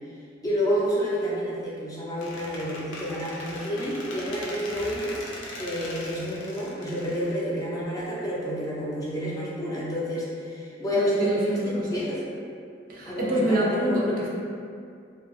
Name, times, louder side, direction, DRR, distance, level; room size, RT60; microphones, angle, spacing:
voice 1, 0.4-5.1 5.6-12.2 13.1-14.0, equal, 20° left, -7 dB, 0.4 m, -29 dB
Squeak, 2.2-8.0, left 1 dB, 80° left, 0.4 m, -39 dB
voice 2, 11.0-12.0 12.9-14.3, equal, 50° right, -4 dB, 0.4 m, -26 dB
2.6 x 2.3 x 2.5 m, 2.3 s
head